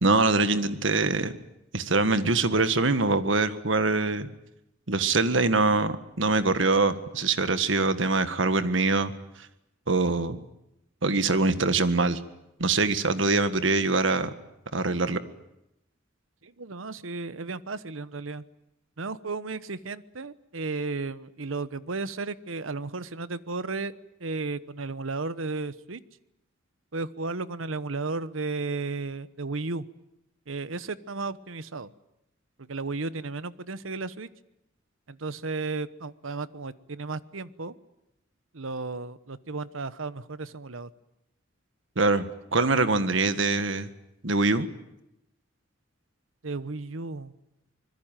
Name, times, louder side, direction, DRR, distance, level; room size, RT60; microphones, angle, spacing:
voice 1, 0.0-1.3 1.7-4.3 4.9-9.1 9.9-10.4 11.0-12.2 12.6-14.3 14.7-15.2 41.9-42.3 42.5-43.9 44.2-44.7, right 3 dB, 70° right, 11 dB, 1.7 m, -23 dB
voice 2, 16.4-18.4 19.0-23.9 24.2-26.0 26.9-29.9 30.5-31.9 32.6-34.3 35.1-37.7 38.5-40.9 46.4-47.3, right 3 dB, 90° right, 15 dB, 1.1 m, -34 dB
25.5 x 21.5 x 9.1 m, 0.86 s
head